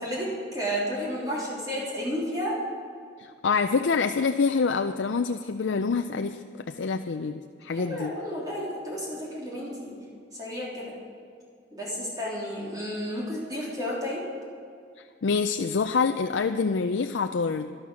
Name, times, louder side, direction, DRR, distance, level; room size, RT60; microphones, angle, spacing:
voice 1, 0.0-2.6 7.7-10.0 10.3-10.9 11.7-14.2, equal, 20° right, -6 dB, 3.2 m, -32 dB
voice 2, 3.2-8.1 15.0-17.7, left 5 dB, 85° left, 7 dB, 0.5 m, -26 dB
12.0 x 12.0 x 6.2 m, 2.3 s
head